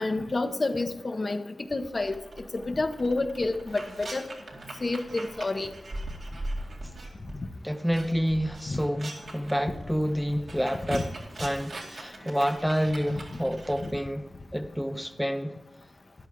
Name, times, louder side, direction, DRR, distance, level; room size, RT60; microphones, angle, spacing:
voice 1, 0.0-1.4 1.7-4.2 4.8-5.7 8.7-8.8 10.9-11.0 13.8-13.9, left 2 dB, 40° left, 7 dB, 0.9 m, -29 dB
sound 1, 2.0-7.4 7.7-13.9, right 1 dB, 75° right, 2.3 m, -41 dB
voice 2, 7.6-11.1 11.4-14.2 14.5-15.5, equal, ahead, 7 dB, 0.7 m, -28 dB
13.0 x 10.5 x 3.8 m, 1.1 s
wide cardioid pair, 95°, 0 cm